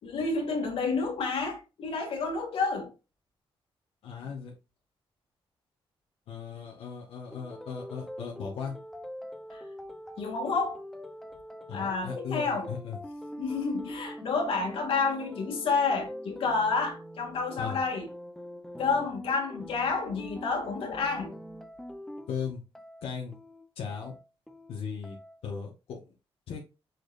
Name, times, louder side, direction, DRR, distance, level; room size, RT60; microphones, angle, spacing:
voice 1, 0.0-2.9 9.5-9.6 10.2-10.8 11.7-12.7 13.4-18.1 18.8-21.3, left 4 dB, 70° left, 2.4 m, -29 dB
voice 2, 4.0-4.5 6.3-8.7 11.7-13.0 17.6-17.8 22.3-22.6 23.0-23.4 23.8-24.2 24.7-25.2 25.4-26.1 26.5-26.6, left 6 dB, 90° left, 1.8 m, -37 dB
sound 1, 7.3-25.6, equal, 5° left, 0.8 m, -44 dB
7.7 x 4.9 x 2.6 m
wide cardioid pair, 165°, 10 cm